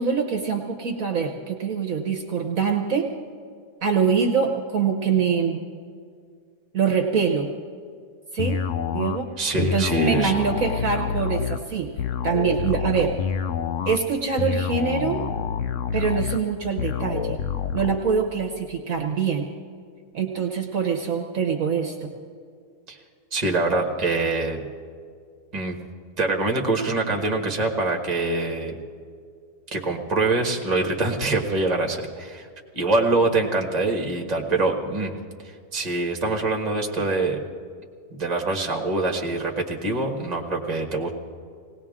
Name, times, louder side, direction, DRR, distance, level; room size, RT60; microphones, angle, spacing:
voice 1, 0.0-3.1 3.8-5.6 6.7-7.5 8.3-8.6 8.9-9.3 9.6-11.9 12.2-13.1 13.9-15.2 15.9-17.4 17.7-19.5 20.1-22.1, right 6 dB, 60° right, 4 dB, 1.3 m, -24 dB
sound 1, 8.4-18.0, left 7 dB, 65° left, 0.9 m, -28 dB
voice 2, 9.4-10.3 22.9-23.0 23.3-24.7 25.5-25.8 26.2-28.8 29.7-32.5 32.7-35.1 35.4-37.4 38.1-41.1, right 2 dB, 25° right, 1 dB, 1.5 m, -24 dB
19.5 x 18.0 x 3.6 m, 2.2 s
omnidirectional pair, 1.7 m